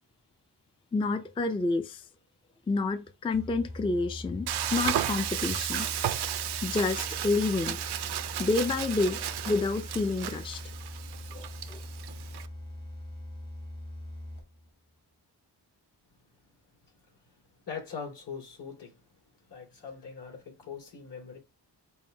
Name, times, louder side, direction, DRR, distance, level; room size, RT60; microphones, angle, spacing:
voice 1, 0.9-2.0 2.7-5.9 6.6-7.8 8.4-10.6 11.3-11.8, left 3 dB, 15° left, 0.4 m, -29 dB
sound 1, 3.3-14.7, left 1 dB, 50° left, 1.7 m, -42 dB
Frying (food), 4.5-12.5, right 11 dB, 70° right, 0.5 m, -34 dB
voice 2, 17.7-19.0 19.5-21.4, left 6 dB, 75° left, 2.7 m, -41 dB
5.5 x 2.2 x 3.2 m
wide cardioid pair, 110°, 41 cm